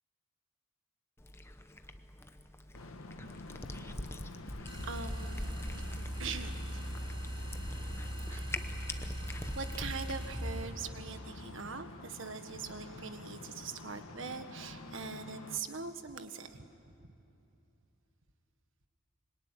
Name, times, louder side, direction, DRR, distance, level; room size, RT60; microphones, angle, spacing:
Cat, 1.2-10.2, left 1 dB, 10° left, 0.9 m, -45 dB
sound 1, 2.7-15.6, left 2 dB, 80° left, 1.5 m, -49 dB
sound 2, 4.7-10.7, equal, 20° right, 3.5 m, -39 dB
voice 1, 4.8-5.5 6.2-6.9 8.3-9.1 9.5-16.6, right 5 dB, 65° right, 8 dB, 1.6 m, -42 dB
25.5 x 23.0 x 9.8 m, 2.8 s
head